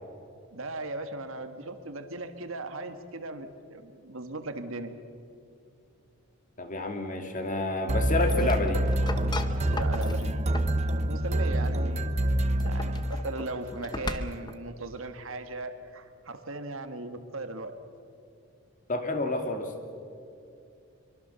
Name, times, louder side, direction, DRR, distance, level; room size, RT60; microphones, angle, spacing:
voice 1, 0.5-5.0 9.7-10.6 11.0-12.2 12.6-17.8, right 2 dB, 65° right, 8 dB, 1.6 m, -38 dB
voice 2, 6.6-8.8 18.9-19.7, left 2 dB, 35° left, 5 dB, 2.4 m, -29 dB
sound 1, 7.9-13.6, right 1 dB, 30° right, 0.8 m, -27 dB
sound 2, 8.0-10.8 12.4-14.6, left 2 dB, 20° left, 0.9 m, -37 dB
24.0 x 23.5 x 6.9 m, 2.5 s
head